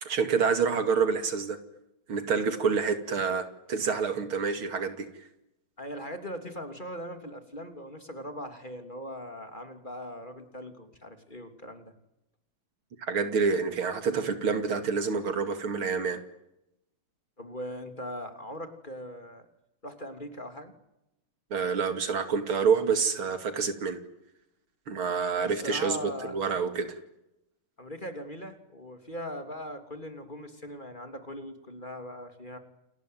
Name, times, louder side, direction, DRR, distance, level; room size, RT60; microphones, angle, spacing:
voice 1, 0.0-1.6 2.1-5.1 13.0-16.2 21.5-24.0 24.9-26.0 26.2-27.0, right 5 dB, 80° right, 9 dB, 3.4 m, -27 dB
voice 2, 5.8-11.9 14.8-14.9 17.4-19.5 19.8-20.7 25.4-26.4 27.8-32.6, equal, 20° left, 7 dB, 3.2 m, -40 dB
29.5 x 20.5 x 9.4 m, 0.88 s
omnidirectional pair, 2.3 m